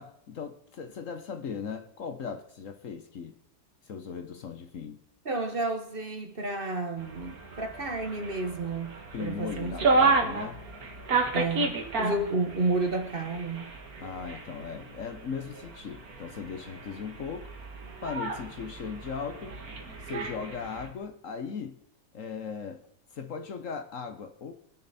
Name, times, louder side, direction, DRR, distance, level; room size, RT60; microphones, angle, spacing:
voice 1, 0.0-3.4 3.8-5.0 9.1-10.6 14.0-17.5 18.0-19.6 20.0-21.8 22.1-22.8 23.1-24.5, left 6 dB, 55° left, 1.2 m, -38 dB
voice 2, 5.2-10.5 11.3-13.7, right 3 dB, 35° right, 1.3 m, -31 dB
sound 1, 7.0-20.9, right 3 dB, 60° right, 2.2 m, -32 dB
24.0 x 10.5 x 4.2 m
omnidirectional pair, 1.8 m